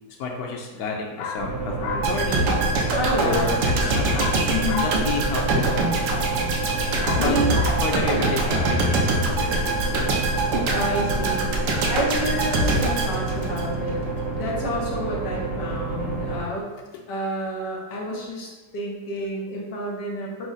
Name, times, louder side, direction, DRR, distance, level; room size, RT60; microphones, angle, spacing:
voice 1, 0.2-2.8 3.2-4.4 4.7-5.8 6.2-6.3 7.0-10.2 16.0-16.1, left 4 dB, 90° left, 0 dB, 0.8 m, -30 dB
sound 1, 1.4-16.4, right 3 dB, 40° right, 0.4 m, -29 dB
sound 2, 2.0-14.0 14.4-14.5, right 2 dB, 65° right, 1.1 m, -24 dB
voice 2, 2.9-3.5 4.5-4.9 7.2-7.5 10.7-11.6 11.9-14.0 14.3-16.7 17.1-20.5, equal, 65° left, -2 dB, 1.3 m, -29 dB
5.9 x 2.1 x 3.9 m, 1.2 s
omnidirectional pair, 2.2 m